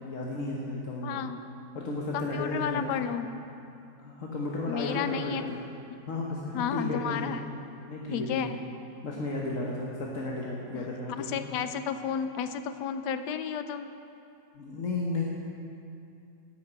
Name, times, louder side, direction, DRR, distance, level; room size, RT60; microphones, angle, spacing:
voice 1, 0.0-1.3 1.7-3.0 4.0-5.6 6.1-7.4 7.9-8.5 9.0-11.4 14.5-15.2, left 2 dB, 55° left, -3 dB, 1.5 m, -33 dB
voice 2, 1.0-1.4 2.1-3.3 4.7-5.6 6.5-7.4 8.1-8.6 10.7-13.9, left 8 dB, 85° left, 10 dB, 1.3 m, -32 dB
11.5 x 8.7 x 8.1 m, 2.6 s
omnidirectional pair, 1.8 m